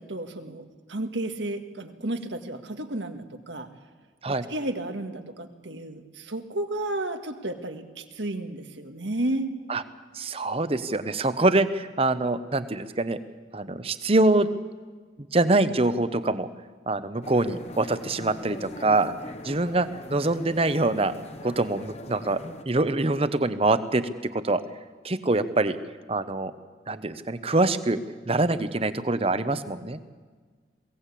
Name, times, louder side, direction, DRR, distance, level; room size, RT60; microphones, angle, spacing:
voice 1, 0.0-3.7 4.3-9.5, right 1 dB, 85° right, 6 dB, 1.8 m, -32 dB
voice 2, 10.1-13.2 13.5-14.5 15.3-16.5 16.9-19.1 19.4-21.1 21.4-22.4 22.6-24.6 25.0-25.8 26.1-26.5 26.9-28.0 28.3-30.0, right 2 dB, 30° right, 12 dB, 0.9 m, -24 dB
sound 1, 17.2-22.6, left 1 dB, 35° left, 1.1 m, -41 dB
22.0 x 17.0 x 8.4 m, 1.5 s
head